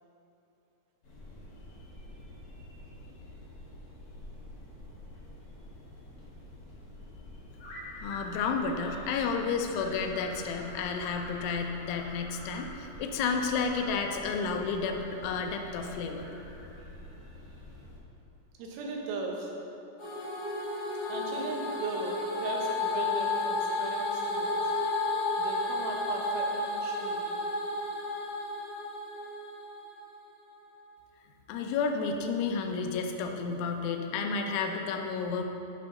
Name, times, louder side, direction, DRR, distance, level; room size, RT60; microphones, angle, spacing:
sound 1, 1.0-18.0, left 1 dB, 60° left, 1.5 m, -46 dB
voice 1, 8.0-16.3 31.5-35.4, left 5 dB, 90° left, 3 dB, 3.1 m, -31 dB
voice 2, 18.6-19.6 21.1-24.7 25.4-27.4, right 3 dB, 90° right, 0 dB, 3.5 m, -38 dB
sound 2, 20.0-30.2, left 2 dB, 45° left, 2.7 m, -32 dB
11.0 x 6.0 x 3.7 m, 2.8 s
omnidirectional pair, 5.3 m